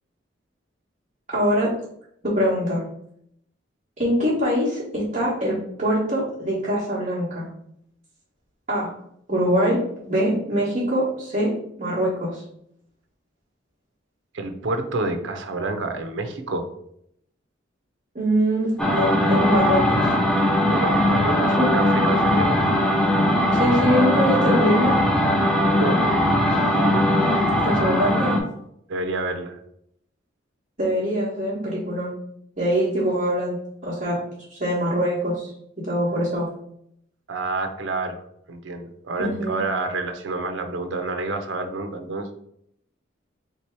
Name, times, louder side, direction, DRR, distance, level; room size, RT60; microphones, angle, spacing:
voice 1, 1.3-1.7 2.2-2.8 4.0-7.5 8.7-8.9 9.3-11.5 11.8-12.4 18.1-20.1 21.6-21.7 23.5-24.9 27.6-28.4 30.8-32.1 32.6-33.6 33.8-34.2 34.5-35.5 35.8-36.5 39.2-39.6, equal, 35° right, -9 dB, 1.3 m, -23 dB
voice 2, 14.3-16.7 20.6-22.5 25.8-26.0 26.4-27.5 28.9-29.6 37.3-38.2 38.5-42.3, right 3 dB, 75° right, 6 dB, 0.6 m, -29 dB
sound 1, 18.8-28.4, left 1 dB, 5° left, 0.5 m, -20 dB
3.3 x 3.0 x 4.4 m, 0.73 s
head